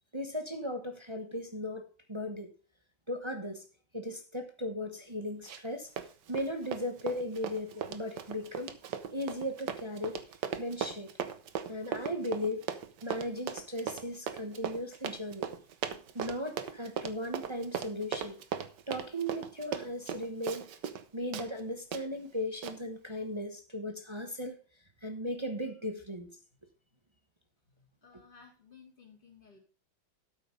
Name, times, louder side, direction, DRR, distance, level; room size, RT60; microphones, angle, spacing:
voice 1, 0.1-2.5 3.1-3.6 3.9-5.9 6.3-8.7 9.1-10.2 10.6-11.1 11.7-12.6 13.0-15.5 16.1-18.4 18.9-20.7 21.1-24.6 25.0-26.4, left 1 dB, 25° right, 0.6 m, -37 dB
Run, 5.5-5.7 6.0-21.0 21.3-21.5 21.9-22.0 22.6-22.8, right 8 dB, 65° right, 1.5 m, -38 dB
voice 2, 27.7-29.6, left 5 dB, 25° left, 3.4 m, -57 dB
12.5 x 5.7 x 5.2 m
omnidirectional pair, 2.2 m